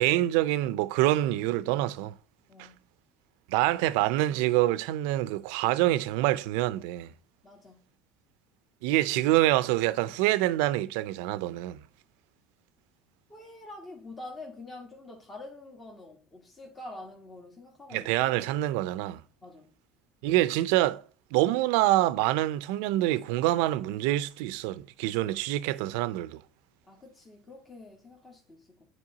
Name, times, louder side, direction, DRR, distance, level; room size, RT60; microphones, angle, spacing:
voice 1, 0.0-2.1 2.6-2.7 3.5-7.1 8.8-11.8 17.9-19.2 20.2-21.0 21.3-26.4, right 15 dB, 75° right, 0.5 m, -26 dB
voice 2, 2.5-2.8 7.4-7.9 13.3-18.1 19.4-19.8 26.9-28.9, left 2 dB, 25° left, 1.5 m, -46 dB
9.7 x 4.4 x 2.7 m
supercardioid pair, 90°, 0 cm